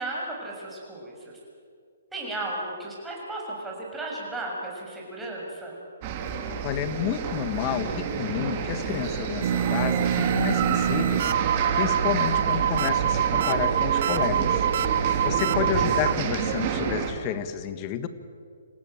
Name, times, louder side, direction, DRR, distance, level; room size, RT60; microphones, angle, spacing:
voice 1, 0.0-1.4 2.1-5.8, right 2 dB, 5° right, -3 dB, 6.6 m, -35 dB
sound 1, 6.0-17.1, right 6 dB, 35° right, 3.0 m, -29 dB
voice 2, 6.6-18.1, left 10 dB, 30° left, 11 dB, 1.5 m, -31 dB
sound 2, 9.4-16.1, right 9 dB, 55° right, 0.8 m, -25 dB
27.5 x 16.0 x 9.1 m, 2.3 s
hypercardioid pair, 150°, 0 cm